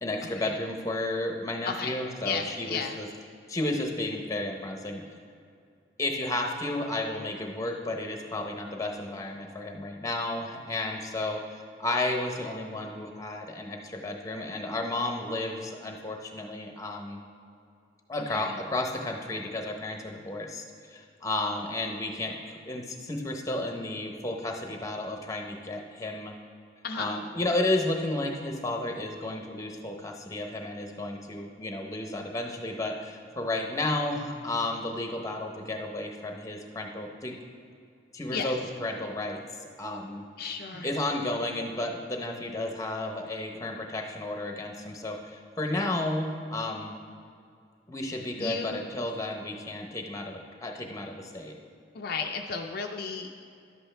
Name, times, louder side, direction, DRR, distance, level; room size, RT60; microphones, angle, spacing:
voice 1, 0.0-3.1 3.5-5.0 6.0-11.4 11.8-17.2 18.1-26.3 27.0-37.4 38.1-40.2 40.8-46.9 47.9-51.5, left 2 dB, 20° left, 2 dB, 0.9 m, -32 dB
voice 2, 1.7-2.0 2.2-3.0 18.3-18.6 26.8-27.2 38.3-38.7 40.4-40.9 48.4-48.9 51.9-53.4, left 5 dB, 55° left, 3 dB, 0.5 m, -34 dB
11.0 x 8.0 x 3.4 m, 2.4 s
head